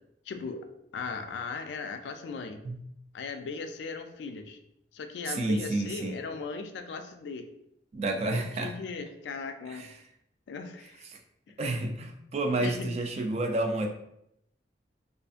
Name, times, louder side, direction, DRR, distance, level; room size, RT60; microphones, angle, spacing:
voice 1, 0.3-0.7 0.9-2.6 3.1-4.6 4.9-7.5 8.1-9.9 10.5-11.0 11.5-11.6 12.6-12.9, left 4 dB, 75° left, 7 dB, 0.3 m, -38 dB
voice 2, 5.2-6.2 7.9-8.7 9.7-10.0 11.0-11.2 11.6-13.9, right 2 dB, 40° right, 4 dB, 0.3 m, -30 dB
2.5 x 2.4 x 2.4 m, 0.78 s
head